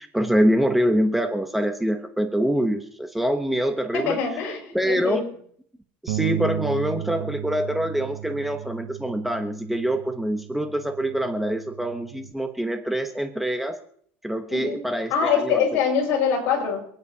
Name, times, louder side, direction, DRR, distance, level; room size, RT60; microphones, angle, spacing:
voice 1, 0.0-4.2 4.7-5.2 6.0-13.8 14.2-15.6, equal, 5° right, 5 dB, 0.9 m, -25 dB
voice 2, 3.9-5.3 14.5-14.8 15.1-16.8, left 6 dB, 55° left, 0 dB, 5.8 m, -24 dB
Bass guitar, 6.1-12.3, right 13 dB, 85° right, 0.6 m, -34 dB
28.0 x 9.5 x 2.8 m, 0.63 s
cardioid pair, 140°, 5 cm